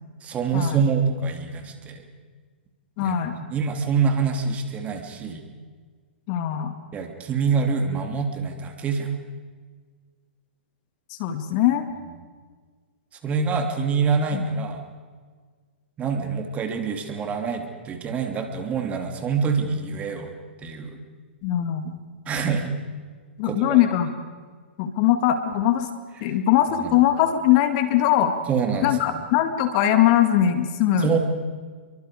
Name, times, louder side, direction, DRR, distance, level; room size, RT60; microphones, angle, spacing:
voice 1, 0.2-2.0 3.0-5.4 6.9-9.1 13.2-14.8 16.0-20.3 20.6-21.0 22.3-22.7 23.4-23.8 26.2-26.4 26.8-27.0 28.5-29.2 31.0-31.2, right 5 dB, 20° right, 4 dB, 2.9 m, -26 dB
voice 2, 3.0-3.4 6.3-6.7 11.2-11.9 14.3-14.4 21.4-21.9 23.4-24.1 24.8-25.9 26.2-28.3 28.8-31.2, left 11 dB, 40° left, 8 dB, 2.2 m, -21 dB
29.5 x 23.5 x 5.0 m, 1.5 s
hypercardioid pair, 120°, 6 cm